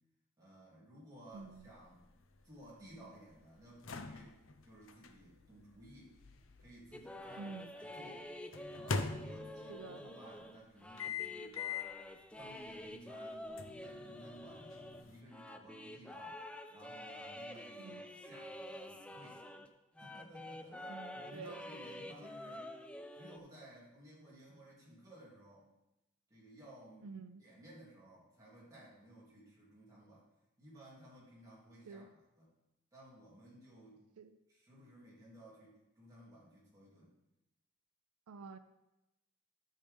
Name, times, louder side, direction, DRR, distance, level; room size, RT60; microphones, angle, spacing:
voice 1, 0.4-2.0 2.4-4.4 4.6-6.1 6.6-8.3 8.7-11.6 12.3-14.8 15.0-16.4 16.7-19.5 20.0-22.7 23.1-25.7 26.3-27.1 27.4-30.2 30.6-32.5 32.9-34.0 34.5-37.1, right 1 dB, 15° right, -8 dB, 3.0 m, -57 dB
sound 1, 1.3-7.4 8.5-9.9 11.0-12.0 12.5-12.6 13.6-15.2, left 4 dB, 60° left, 0.6 m, -43 dB
voice 2, 1.3-1.7 7.4-7.7 9.7-10.2 17.8-18.0 20.9-21.6 27.0-27.4 31.9-32.1 34.2-34.4 38.3-38.6, right 4 dB, 85° right, 10 dB, 0.5 m, -49 dB
sound 2, 6.9-19.7 20.0-23.4, left 1 dB, 5° left, 0.3 m, -48 dB
12.0 x 6.6 x 3.5 m, 0.93 s
head